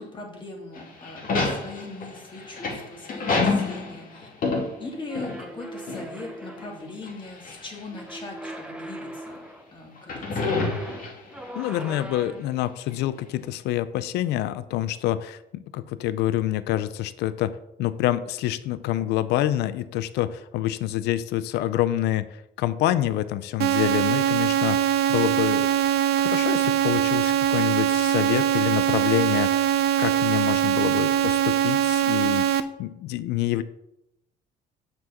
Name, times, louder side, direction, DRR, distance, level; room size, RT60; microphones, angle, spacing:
voice 1, 0.0-4.3 4.8-9.4 9.7-10.6, left 2 dB, 30° left, -1 dB, 2.6 m, -40 dB
sound 1, 0.8-5.6 5.9-6.0 7.0-7.8 8.5-8.6 10.0-11.5, left 3 dB, 55° left, 2.7 m, -27 dB
sound 2, 5.1-6.9 7.9-9.7 10.3-12.6, right 1 dB, 5° right, 1.0 m, -40 dB
voice 2, 11.5-25.7 26.2-29.7 30.0-33.6, left 13 dB, 85° left, 15 dB, 0.5 m, -27 dB
sound 3, 23.6-32.6, right 10 dB, 70° right, 0.6 m, -22 dB
7.7 x 6.0 x 5.8 m, 0.85 s
cardioid pair, 110°, 17 cm